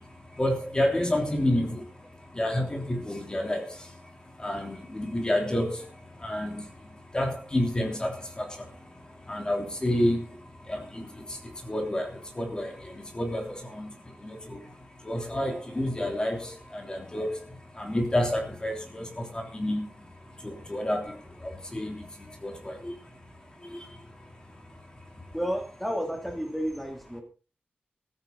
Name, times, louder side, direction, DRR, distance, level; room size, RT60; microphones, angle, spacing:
voice 1, 0.4-1.8 2.3-3.6 4.4-5.8 6.2-6.6 7.1-8.5 9.3-10.2 10.7-11.1 11.7-12.7 13.1-13.9 14.2-14.6 15.0-17.3 17.8-19.8 20.4-21.1 21.4-22.0 22.4-22.9 23.7-23.8, left 1 dB, 25° left, 3 dB, 3.3 m, -29 dB
voice 2, 25.3-27.2, equal, ahead, 2 dB, 3.0 m, -31 dB
15.5 x 14.0 x 4.0 m, 0.34 s
wide cardioid pair, 125°, 4 cm